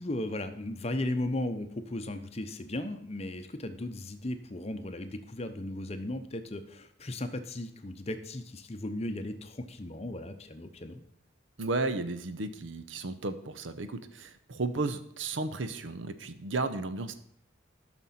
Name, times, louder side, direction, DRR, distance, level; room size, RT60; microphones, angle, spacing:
voice 1, 0.0-11.0, left 1 dB, 35° left, 8 dB, 0.7 m, -36 dB
voice 2, 11.6-17.2, right 3 dB, 80° right, 11 dB, 0.7 m, -34 dB
13.0 x 6.0 x 4.2 m, 0.69 s
head